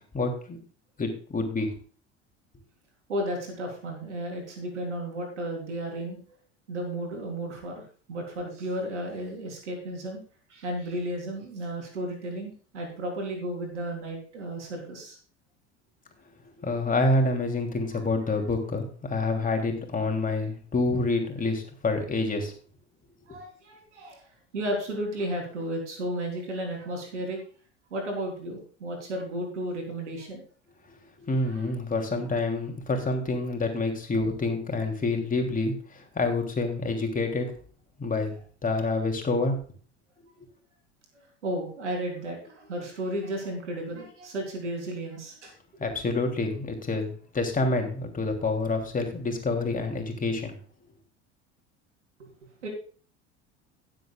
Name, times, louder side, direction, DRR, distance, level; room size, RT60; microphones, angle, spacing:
voice 1, 0.1-0.6 1.0-1.7 16.6-22.5 31.2-37.5 38.0-38.4 38.6-39.6 45.8-50.5, left 2 dB, 25° left, 3 dB, 3.1 m, -27 dB
voice 2, 3.1-6.2 6.7-10.2 10.5-15.2 17.9-18.0 20.3-20.4 23.3-27.4 27.9-30.4 31.4-31.7 41.1-45.5 52.4-52.7, right 1 dB, 85° right, 2 dB, 3.8 m, -34 dB
17.5 x 7.8 x 2.4 m, 0.42 s
hypercardioid pair, 75°, 34 cm